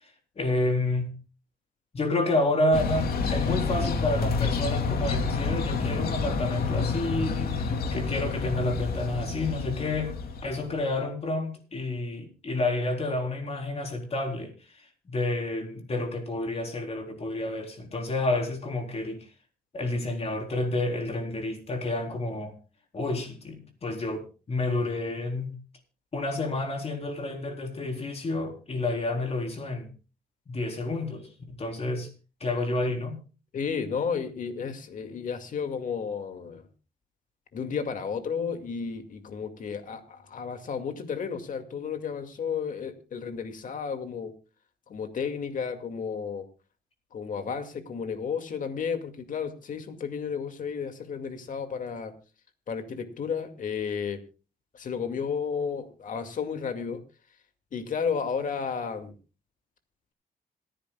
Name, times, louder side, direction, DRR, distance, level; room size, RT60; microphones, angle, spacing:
voice 1, 0.4-1.1 1.9-14.5 15.1-19.2 19.7-22.5 22.9-25.5 26.1-29.9 30.5-31.3 31.6-32.1 32.4-33.2, left 2 dB, 40° left, 3.9 m, -29 dB
sound 1, 2.7-10.8, left 4 dB, 80° left, 2.8 m, -29 dB
voice 2, 33.5-36.7 37.5-44.3 44.9-46.5 47.1-52.1 52.7-54.2 54.7-57.0 57.7-59.1, left 6 dB, 60° left, 2.3 m, -32 dB
26.5 x 10.5 x 2.3 m
cardioid pair, 100°, 16 cm